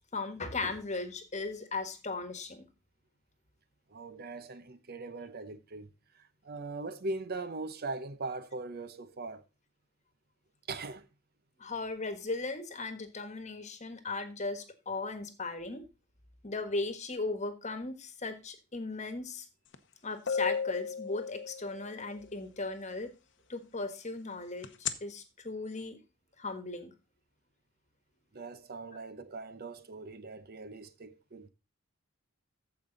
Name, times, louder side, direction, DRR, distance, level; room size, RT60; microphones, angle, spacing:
voice 1, 0.1-2.6 11.6-15.8 16.4-19.4 20.0-23.1 23.5-26.0 26.4-26.9, left 3 dB, 35° left, 1.4 m, -37 dB
voice 2, 3.9-5.9 6.1-9.4 10.7-11.1 28.3-31.5, right 3 dB, 50° right, 0.8 m, -40 dB
sound 1, 19.7-19.8 20.3-22.0 24.6-24.9, left 6 dB, 60° left, 0.9 m, -33 dB
14.5 x 5.2 x 3.9 m
head